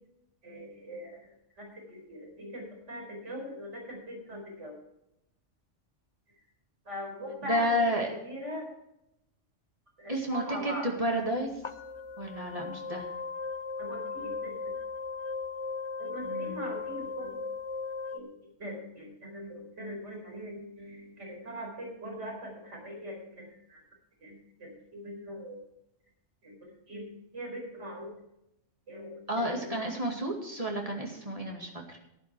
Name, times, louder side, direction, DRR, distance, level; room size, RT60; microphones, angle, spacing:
voice 1, 0.4-4.7 6.8-8.7 10.0-10.9 13.8-14.7 16.0-17.4 18.1-18.3 18.6-23.8 24.2-25.6 26.4-28.2 28.9-30.0, equal, 75° right, 0 dB, 4.8 m, -41 dB
voice 2, 7.5-8.1 10.1-11.5 12.2-13.0 16.2-16.6 29.3-32.0, equal, 30° right, 1 dB, 2.3 m, -31 dB
sound 1, 11.2-11.3 11.6-18.2, left 4 dB, 40° left, 0.4 m, -37 dB
12.0 x 11.0 x 4.7 m, 0.85 s
omnidirectional pair, 1.2 m